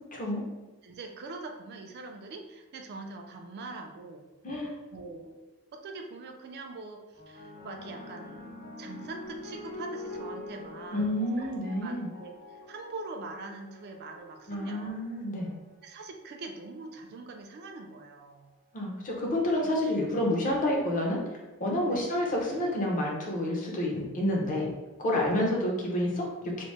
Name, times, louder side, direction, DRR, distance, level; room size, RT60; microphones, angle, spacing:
voice 1, 0.1-0.4 4.4-4.7 10.9-12.1 14.5-15.5 18.7-21.2 21.6-24.7 25.0-26.6, left 1 dB, 35° left, -1 dB, 0.6 m, -29 dB
voice 2, 0.8-4.3 4.9-5.3 5.7-8.5 8.8-11.1 11.4-11.5 11.8-14.9 15.8-18.5 21.9-22.1 25.3-25.4, right 3 dB, 45° right, 4 dB, 0.3 m, -43 dB
sound 1, 7.1-15.7 16.6-17.0, left 2 dB, 55° left, 1.5 m, -45 dB
2.9 x 2.0 x 3.1 m, 1.1 s
head